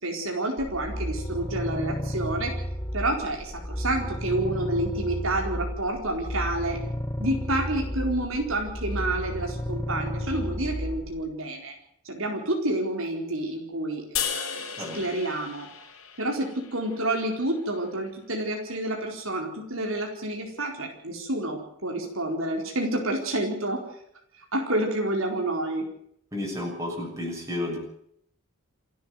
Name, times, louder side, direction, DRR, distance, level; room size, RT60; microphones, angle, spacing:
voice 1, 0.0-2.6 2.9-6.8 7.2-11.7 12.0-15.7 16.2-23.8 24.5-25.8, right 1 dB, 65° right, 1 dB, 4.4 m, -29 dB
sound 1, 0.6-11.2, equal, 15° left, 1.1 m, -32 dB
sound 2, 14.2-17.4, left 8 dB, 65° left, 4.3 m, -35 dB
voice 2, 26.3-27.8, left 1 dB, 15° right, 0 dB, 7.2 m, -31 dB
28.5 x 10.0 x 9.6 m, 0.70 s
head